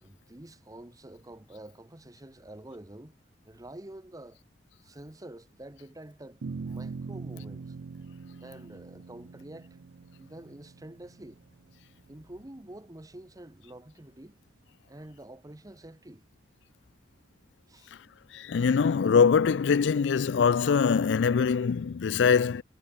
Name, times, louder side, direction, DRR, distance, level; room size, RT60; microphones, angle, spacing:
voice 1, 0.0-3.2 3.5-4.4 4.8-7.8 8.4-9.8 10.2-11.4 12.1-14.4 14.9-16.2 17.7-17.9, right 1 dB, 20° right, 1.1 m, -47 dB
sound 1, 6.4-13.0, right 4 dB, 80° right, 0.5 m, -42 dB
voice 2, 18.3-22.6, left 6 dB, 80° left, 0.4 m, -23 dB
head